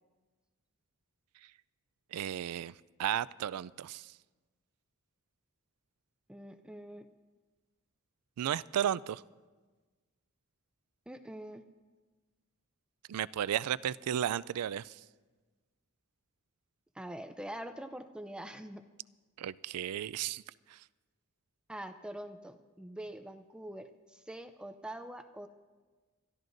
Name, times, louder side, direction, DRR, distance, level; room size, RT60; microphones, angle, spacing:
voice 1, 2.1-4.1 8.4-9.2 13.1-15.0 19.4-20.4 20.7-20.8, right 10 dB, 90° right, 19 dB, 0.3 m, -34 dB
voice 2, 6.3-7.1 11.1-11.6 16.9-18.9 21.7-25.5, right 1 dB, 5° right, 8 dB, 0.4 m, -44 dB
28.0 x 14.0 x 2.6 m, 1.3 s
head